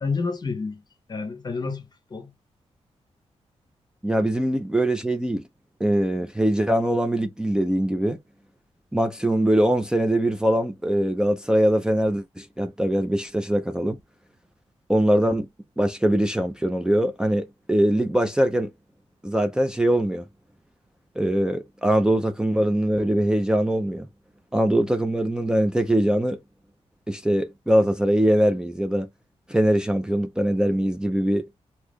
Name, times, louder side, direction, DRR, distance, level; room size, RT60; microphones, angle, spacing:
voice 1, 0.0-0.8 1.1-2.3, left 4 dB, 35° left, 0.8 m, -29 dB
voice 2, 4.0-5.4 5.8-8.2 8.9-14.0 14.9-15.5 15.8-18.7 19.2-20.3 21.2-24.1 24.5-26.4 27.1-29.1 29.5-31.5, right 1 dB, 5° right, 0.5 m, -22 dB
2.8 x 2.4 x 3.5 m
wide cardioid pair, 110°, 12 cm